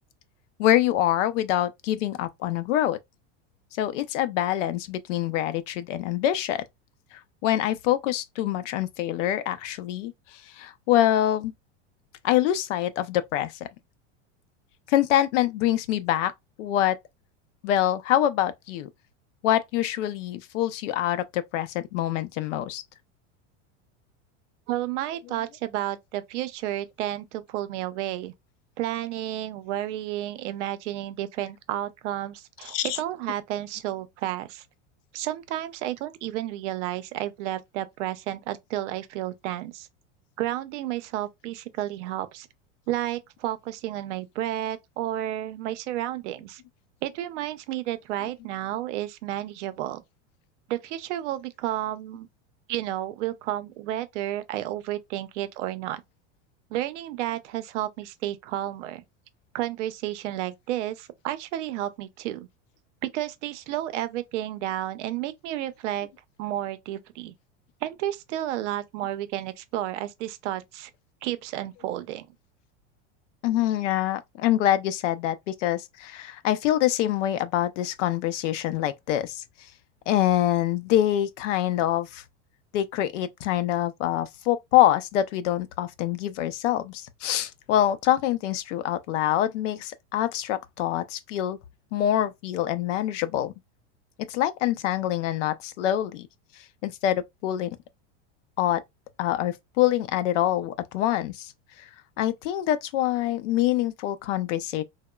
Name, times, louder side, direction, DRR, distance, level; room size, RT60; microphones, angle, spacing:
voice 1, 0.6-3.0 3.8-6.6 7.1-11.5 12.2-13.5 14.9-16.3 16.6-17.0 17.6-18.9 19.4-22.8 32.7-33.0 73.4-79.4 80.1-82.2 82.7-91.6 91.9-93.5 94.3-96.3 96.8-97.7 98.6-98.8 99.2-101.5 101.8-101.9 102.2-104.8, left 12 dB, 90° left, 0.5 m, -25 dB
voice 2, 24.7-28.3 28.8-34.6 35.1-39.9 40.4-42.5 42.9-46.6 47.0-50.0 50.7-52.3 52.7-56.0 56.7-59.0 59.5-62.5 63.0-66.1 66.4-67.3 67.8-70.9 71.2-72.3, right 13 dB, 75° right, 0.5 m, -31 dB
2.8 x 2.1 x 2.2 m
supercardioid pair, 145°, 36 cm